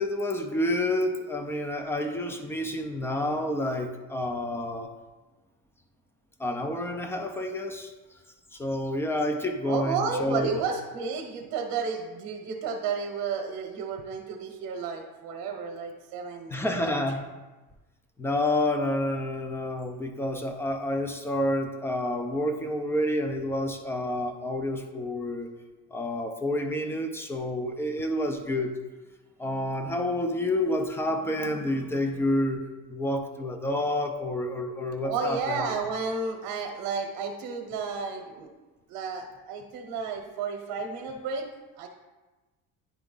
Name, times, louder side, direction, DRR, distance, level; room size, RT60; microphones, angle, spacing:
voice 1, 0.0-4.9 6.4-7.9 8.5-10.6 16.5-17.2 18.2-25.5 25.9-28.7 29.4-32.6 32.9-35.7, left 1 dB, 5° left, 5 dB, 0.3 m, -29 dB
voice 2, 9.7-17.0 35.0-38.5 38.9-41.4 41.8-41.9, right 5 dB, 70° right, 1 dB, 0.9 m, -32 dB
9.9 x 3.4 x 3.8 m, 1.2 s
cardioid pair, 150°, 36 cm